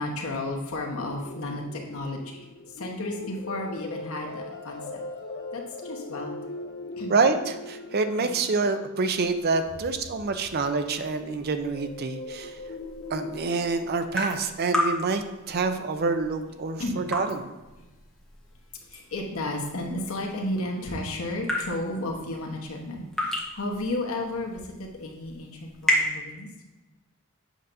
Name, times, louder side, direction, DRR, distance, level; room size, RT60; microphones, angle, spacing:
voice 1, 0.0-2.3 2.8-4.8 5.5-6.4 7.0-7.2 8.2-8.3 16.8-17.1 18.9-26.5, left 1 dB, 85° left, 1 dB, 1.1 m, -33 dB
sound 1, 0.9-10.6 11.6-13.7, left 2 dB, 55° left, 0.6 m, -40 dB
voice 2, 7.1-12.6 13.1-17.5, right 4 dB, 50° right, 8 dB, 0.5 m, -27 dB
sound 2, 9.0-26.1, equal, ahead, 1.1 m, -35 dB
7.7 x 5.6 x 2.6 m, 1.1 s
head